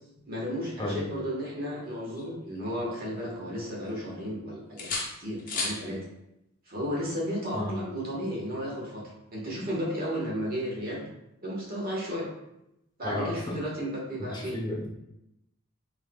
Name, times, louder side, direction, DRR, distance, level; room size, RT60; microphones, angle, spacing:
voice 1, 0.3-4.9 5.2-6.0 6.7-9.0 9.3-11.0 11.4-12.3 13.0-14.6, equal, 45° right, -4 dB, 1.3 m, -33 dB
sound 1, 1.6-3.2 3.6-4.4 4.8-5.8 7.7-7.9, left 3 dB, 45° left, 0.8 m, -37 dB
voice 2, 14.3-14.9, left 1 dB, 20° left, -4 dB, 1.0 m, -32 dB
4.2 x 3.5 x 2.3 m, 0.85 s
head